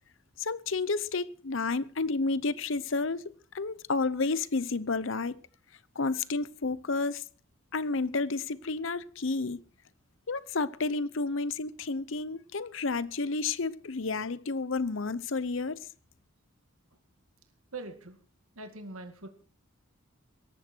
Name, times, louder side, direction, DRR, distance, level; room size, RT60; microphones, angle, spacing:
voice 1, 0.4-5.4 6.0-7.2 7.7-9.6 10.3-15.8, left 3 dB, 65° left, 0.8 m, -31 dB
voice 2, 17.7-18.2 18.6-19.3, right 2 dB, 85° right, 2.2 m, -42 dB
18.0 x 14.0 x 4.5 m
head